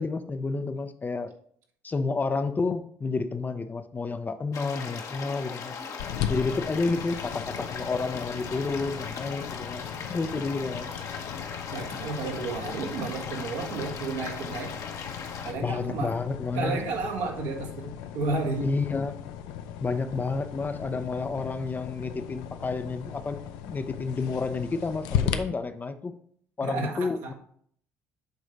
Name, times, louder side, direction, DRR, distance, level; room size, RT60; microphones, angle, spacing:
voice 1, 0.0-1.3 1.8-5.7 6.3-10.9 15.6-16.8 18.6-19.2 19.8-26.1 26.6-27.3, left 4 dB, 25° left, 10 dB, 0.6 m, -30 dB
sound 1, 4.5-15.5, left 5 dB, 50° left, 1.1 m, -38 dB
sound 2, 6.0-25.4, left 9 dB, 80° left, 0.5 m, -37 dB
voice 2, 11.7-14.7 15.4-16.2 16.5-18.7 26.6-27.3, right 3 dB, 80° right, 0 dB, 1.7 m, -32 dB
8.0 x 3.2 x 5.1 m, 0.63 s
supercardioid pair, 70°, 7 cm